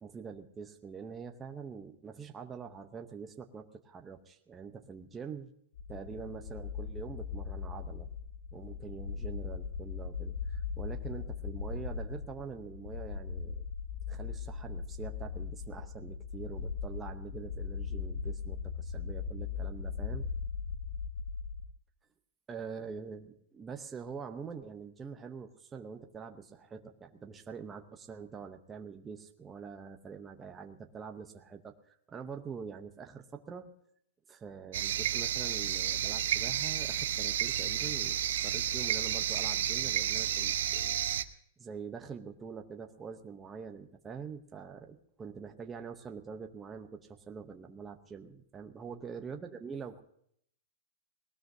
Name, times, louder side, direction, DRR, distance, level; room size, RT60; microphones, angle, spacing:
voice 1, 0.0-5.5 5.9-8.1 8.5-13.7 14.1-20.2 22.5-33.7 34.3-41.0 41.6-50.0, right 6 dB, 10° right, 5 dB, 0.7 m, -45 dB
sound 1, 5.8-21.7, left 6 dB, 75° left, 1.0 m, -39 dB
sound 2, 34.7-41.2, right 11 dB, 60° right, 0.8 m, -31 dB
19.0 x 18.5 x 2.7 m, 0.67 s
supercardioid pair, 180°, 0 cm